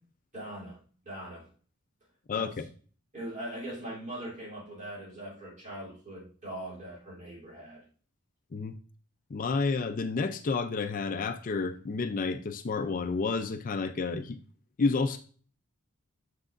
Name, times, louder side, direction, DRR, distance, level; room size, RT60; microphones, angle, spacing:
voice 1, 0.3-1.5 2.3-2.7 3.1-7.8, right 1 dB, 35° right, -5 dB, 3.1 m, -41 dB
voice 2, 2.3-2.7 8.5-8.8 9.3-14.4 14.8-15.2, left 4 dB, 40° left, 9 dB, 0.4 m, -30 dB
7.5 x 6.0 x 2.5 m, 0.43 s
head